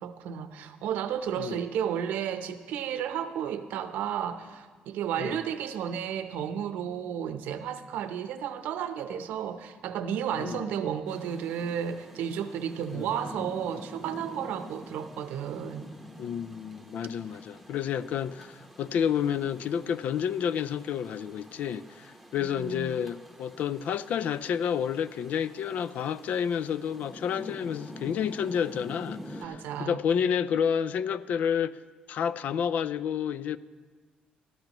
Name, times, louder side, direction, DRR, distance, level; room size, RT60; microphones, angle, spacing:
voice 1, 0.0-15.9 22.5-22.9 29.4-30.0, right 8 dB, 90° right, 0.7 m, -33 dB
voice 2, 10.4-10.7 12.9-13.1 16.2-31.8 32.1-33.6, left 8 dB, 65° left, 0.4 m, -30 dB
Rain, 11.1-29.5, equal, 5° left, 1.1 m, -47 dB
19.5 x 13.0 x 3.0 m
cardioid pair, 130°, 3 cm